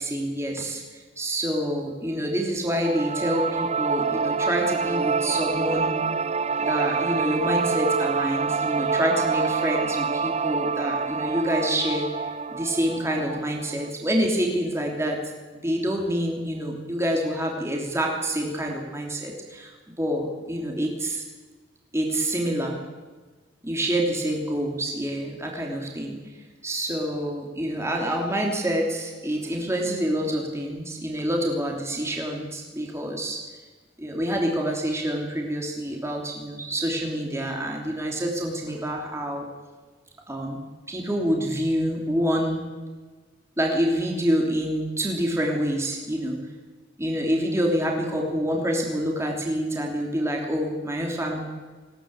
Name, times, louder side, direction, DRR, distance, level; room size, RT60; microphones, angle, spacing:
voice 1, 0.0-5.9 6.7-15.2 15.5-19.7 20.0-21.2 21.9-22.8 23.6-26.2 26.6-33.4 34.0-39.5 40.3-40.6 40.9-42.6 43.6-46.4 47.0-51.4, equal, 15° right, 0 dB, 3.0 m, -27 dB
sound 1, 2.8-13.9, right 5 dB, 35° right, 0.5 m, -26 dB
20.5 x 16.5 x 8.8 m, 1.4 s
head